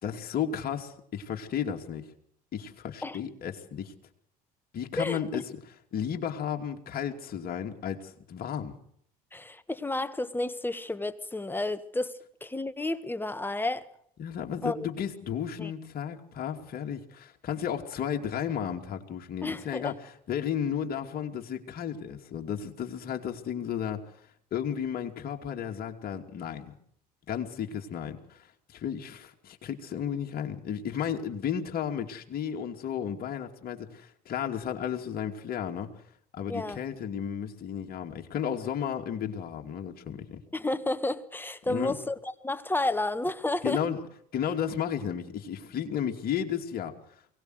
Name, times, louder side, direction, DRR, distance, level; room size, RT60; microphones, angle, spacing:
voice 1, 0.0-2.0 2.5-3.9 4.7-5.4 5.9-8.7 14.2-24.0 24.5-26.7 27.3-35.9 36.3-40.4 41.7-42.0 43.6-44.0 44.3-46.9, left 8 dB, 50° left, 2.7 m, -33 dB
voice 2, 5.0-5.4 9.3-13.9 14.6-14.9 15.6-15.7 19.4-20.0 36.5-36.8 40.5-43.8, left 2 dB, 10° left, 1.5 m, -31 dB
23.0 x 18.0 x 8.1 m
hypercardioid pair, 80°, 20 cm